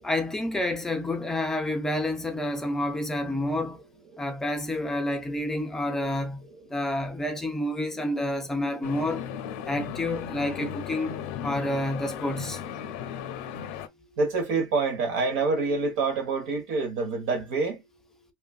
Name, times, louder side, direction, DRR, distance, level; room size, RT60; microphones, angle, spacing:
voice 1, 0.0-3.8 4.2-6.4 6.7-9.3 9.7-12.6, left 1 dB, 5° left, 0.4 m, -29 dB
sound 1, 8.8-13.9, left 8 dB, 85° left, 0.5 m, -36 dB
voice 2, 14.2-17.8, right 4 dB, 90° right, 1.3 m, -26 dB
3.0 x 2.4 x 2.3 m
cardioid pair, 170°, 6 cm